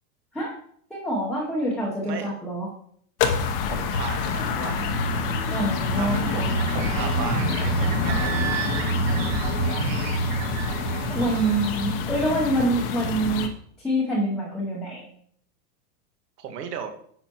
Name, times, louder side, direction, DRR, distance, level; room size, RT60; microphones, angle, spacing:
voice 1, 0.9-2.7 5.5-6.6 11.1-13.5 13.8-15.0, right 1 dB, ahead, -7 dB, 0.8 m, -26 dB
voice 2, 2.0-2.3 3.6-4.9 5.9-8.7 11.2-11.6 16.4-16.9, right 6 dB, 85° right, 6 dB, 1.6 m, -36 dB
sound 1, 3.2-13.5, left 5 dB, 40° left, 0.8 m, -27 dB
sound 2, 5.3-11.9, right 5 dB, 55° right, 2.1 m, -28 dB
10.0 x 5.8 x 3.0 m, 0.62 s
supercardioid pair, 165°, 47 cm